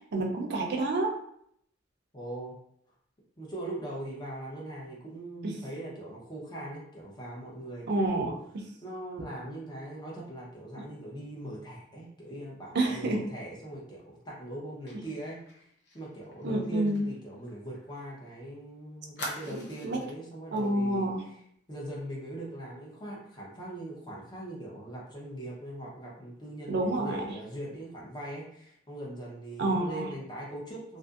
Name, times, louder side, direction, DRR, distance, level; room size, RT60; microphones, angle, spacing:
voice 1, 0.1-1.1 5.4-5.5 7.9-8.3 12.7-13.3 16.4-17.0 19.5-20.0 20.5-21.2 26.7-27.2 29.6-30.1, right 2 dB, 55° right, 1 dB, 0.5 m, -28 dB
voice 2, 2.1-2.6 3.4-8.3 8.8-15.6 15.9-21.4 21.7-31.0, right 1 dB, 20° left, -4 dB, 0.7 m, -41 dB
Fire, 14.9-18.3 18.6-18.7 19.2-20.1 20.6-20.7 21.0-21.3, equal, 60° left, 0.7 m, -44 dB
2.5 x 2.5 x 2.4 m, 0.69 s
head